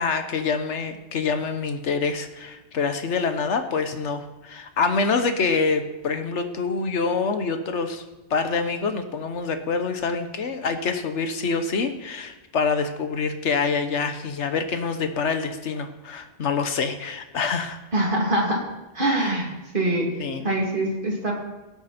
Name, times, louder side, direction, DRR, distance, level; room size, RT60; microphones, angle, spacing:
voice 1, 0.0-8.0 8.3-17.8 19.2-19.3 20.2-20.5, left 4 dB, 80° left, 8 dB, 1.4 m, -26 dB
voice 2, 17.9-18.6 18.9-19.5 19.7-20.0 20.4-21.3, right 1 dB, 45° right, -2 dB, 2.8 m, -23 dB
18.0 x 8.0 x 4.4 m, 1.1 s
omnidirectional pair, 1.2 m